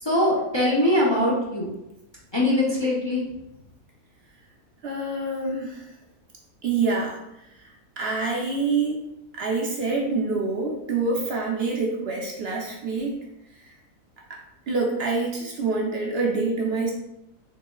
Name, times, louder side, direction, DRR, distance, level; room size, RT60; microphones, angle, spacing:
voice 1, 0.0-1.7 2.3-3.2, left 1 dB, 30° left, -6 dB, 0.5 m, -22 dB
voice 2, 4.8-5.9 6.6-7.2 7.5-9.0 9.3-13.2 13.6-13.8 14.3-14.4 14.7-16.9, right 3 dB, 60° right, -1 dB, 0.7 m, -26 dB
3.9 x 3.6 x 2.3 m, 0.87 s
omnidirectional pair, 1.5 m